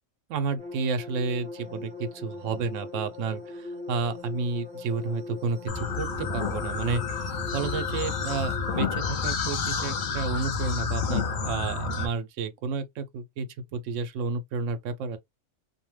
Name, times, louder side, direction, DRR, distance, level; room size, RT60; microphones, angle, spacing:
voice 1, 0.3-7.0 7.5-15.2, right 4 dB, 80° right, 0.9 m, -31 dB
sound 1, 0.6-8.8, left 3 dB, 5° right, 0.8 m, -40 dB
sound 2, 5.7-12.1, left 5 dB, 55° left, 0.6 m, -30 dB
2.6 x 2.1 x 3.1 m
omnidirectional pair, 1.3 m